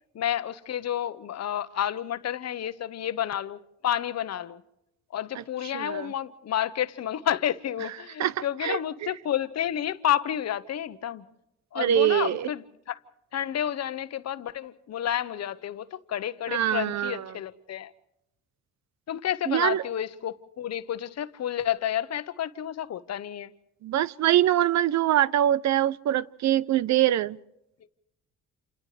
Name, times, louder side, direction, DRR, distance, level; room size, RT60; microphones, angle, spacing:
voice 1, 0.1-4.6 5.1-11.2 11.7-13.0 13.3-17.9 19.1-23.5, left 10 dB, 60° left, 1.0 m, -30 dB
voice 2, 5.7-6.1 8.2-8.3 8.6-8.8 11.8-12.5 16.5-17.2 19.5-19.8 23.8-27.4, right 12 dB, 65° right, 0.7 m, -23 dB
29.0 x 28.0 x 3.3 m
cardioid pair, 90°, 30 cm